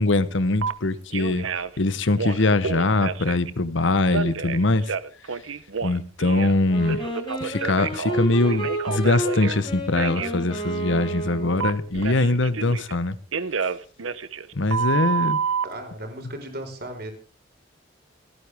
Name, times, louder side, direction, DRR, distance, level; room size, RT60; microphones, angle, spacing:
voice 1, 0.0-1.5 1.8-4.9 5.8-7.0 7.4-13.2 14.5-15.4, left 2 dB, 70° left, 1.0 m, -22 dB
Telephone, 0.6-0.7 1.1-1.8 2.1-3.5 4.1-6.6 6.9-9.6 10.0-10.3 11.6-13.0 13.3-15.7, right 6 dB, 85° right, 0.9 m, -29 dB
Wind instrument woodwind instrument, 6.7-11.9, right 1 dB, 25° left, 5.1 m, -31 dB
voice 2, 15.4-17.1, right 1 dB, 50° right, 4.7 m, -36 dB
28.0 x 9.7 x 3.6 m
head